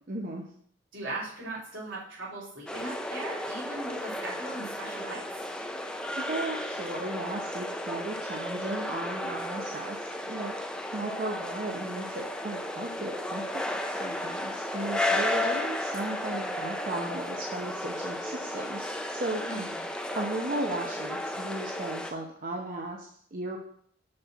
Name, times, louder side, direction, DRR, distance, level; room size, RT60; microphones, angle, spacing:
voice 1, 0.1-0.4 6.1-10.5 10.9-19.4 20.1-23.6, right 2 dB, 45° right, 0 dB, 0.8 m, -36 dB
voice 2, 0.9-5.2 19.4-19.7, right 2 dB, 80° right, -7 dB, 3.3 m, -38 dB
sound 1, 2.7-22.1, left 1 dB, 5° left, 0.5 m, -34 dB
6.5 x 4.3 x 5.8 m, 0.62 s
head